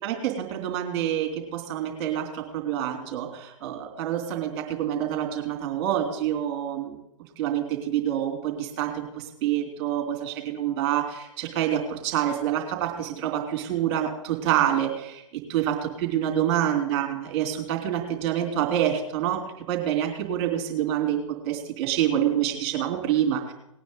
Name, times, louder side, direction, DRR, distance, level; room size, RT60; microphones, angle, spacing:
voice 1, 0.0-7.0 7.4-15.2 15.5-19.4 19.7-23.5, right 10 dB, 30° right, 2 dB, 3.2 m, -27 dB
19.0 x 9.4 x 4.0 m, 0.83 s
figure-of-eight pair, 120°, 17 cm